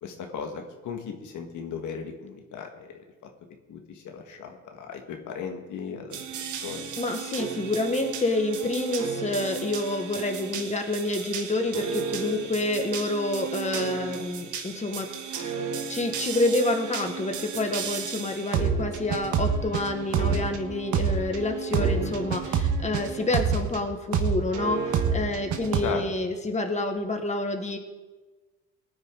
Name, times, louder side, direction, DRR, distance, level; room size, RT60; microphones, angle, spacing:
voice 1, 0.0-3.0 3.7-6.2 6.5-6.9 21.7-22.1 25.8-26.0, left 6 dB, 80° left, 4 dB, 1.6 m, -36 dB
sound 1, 6.1-23.8 24.1-25.8, right 6 dB, 80° right, 1.4 m, -30 dB
voice 2, 7.0-15.1 15.4-15.5 15.9-27.8, left 2 dB, 25° left, 5 dB, 1.6 m, -28 dB
18.5 x 9.6 x 3.7 m, 1.2 s
cardioid pair, 90°, 30 cm